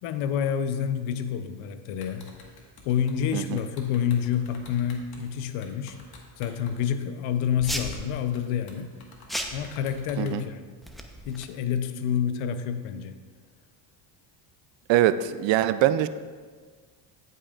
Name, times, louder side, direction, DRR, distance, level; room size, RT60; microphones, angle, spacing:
voice 1, 0.0-2.3 2.9-6.0 6.4-8.9 9.5-10.6 11.3-13.1, left 8 dB, 80° left, 9 dB, 0.8 m, -28 dB
sound 1, 2.0-6.9 7.3-7.4 7.8-10.4, left 3 dB, 50° left, 1.6 m, -50 dB
sound 2, 7.6-8.0 9.3-9.7 10.8-11.5, equal, ahead, 0.8 m, -33 dB
voice 2, 14.9-16.1, right 12 dB, 65° right, 13 dB, 0.5 m, -23 dB
13.5 x 5.6 x 2.4 m, 1.5 s
supercardioid pair, 75°, 49 cm